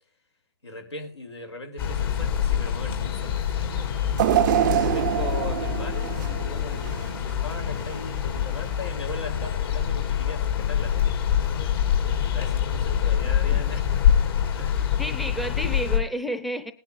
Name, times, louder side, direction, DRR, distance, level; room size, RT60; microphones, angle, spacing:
voice 1, 0.6-3.9 4.9-11.2 12.2-15.0, left 2 dB, 85° left, 3.7 m, -39 dB
sound 1, 1.8-16.0, left 9 dB, 60° left, 3.7 m, -25 dB
sound 2, 4.2-7.3 7.8-7.9 8.9-9.0, right 12 dB, 45° right, 0.4 m, -25 dB
voice 2, 13.2-13.7 15.0-16.7, equal, ahead, 0.6 m, -31 dB
19.5 x 10.0 x 2.6 m
hypercardioid pair, 130°, 14 cm